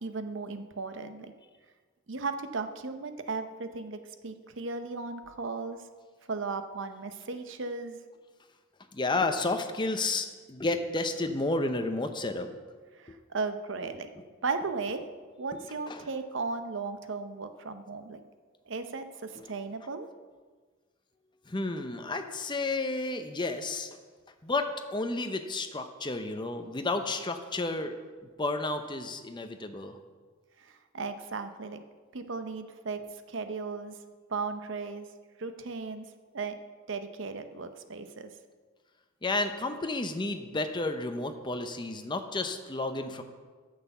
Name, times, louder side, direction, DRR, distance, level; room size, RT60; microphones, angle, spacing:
voice 1, 0.0-1.3 2.1-5.8 6.3-8.0 13.0-14.1 14.4-15.0 15.4-18.2 18.7-20.1 30.6-31.8 32.1-34.0 34.3-35.1 35.4-36.0 36.3-36.6 36.9-38.3, right 4 dB, 60° right, 9 dB, 0.8 m, -36 dB
voice 2, 8.9-12.5 13.1-13.2 14.2-14.3 15.9-16.0 19.4-19.5 21.5-24.0 24.4-28.0 28.4-30.0 39.2-43.2, left 2 dB, 20° left, 7 dB, 0.7 m, -31 dB
9.3 x 6.6 x 7.0 m, 1.5 s
head